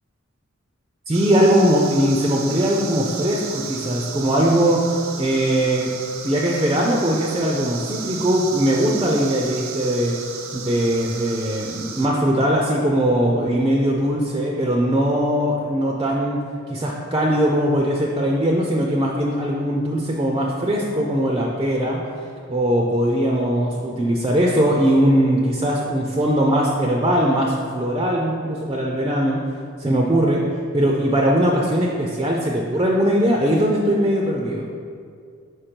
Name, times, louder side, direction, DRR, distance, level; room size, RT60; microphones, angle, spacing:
voice 1, 1.1-4.8 5.2-5.9 6.2-10.2 10.5-16.4 16.7-22.1 22.5-29.4 29.8-30.4 30.7-34.6, equal, 20° right, -1 dB, 0.4 m, -20 dB
sound 1, 1.1-12.1, right 6 dB, 80° right, 0.6 m, -34 dB
5.1 x 4.5 x 4.4 m, 2.3 s
head